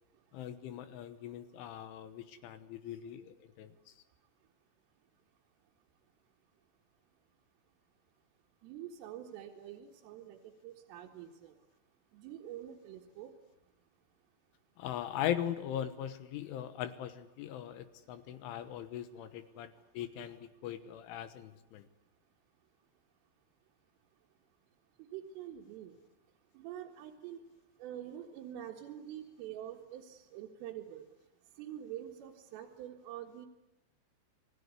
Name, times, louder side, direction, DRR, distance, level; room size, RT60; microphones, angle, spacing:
voice 1, 0.3-3.7 14.8-21.9, left 11 dB, 75° left, 11 dB, 3.5 m, -40 dB
voice 2, 8.6-10.4 10.6-11.5 12.1-13.3 25.0-25.9 26.6-27.4 27.8-31.0 31.6-33.5, right 11 dB, 75° right, -2 dB, 4.3 m, -46 dB
29.0 x 20.0 x 9.6 m, 0.95 s
omnidirectional pair, 5.9 m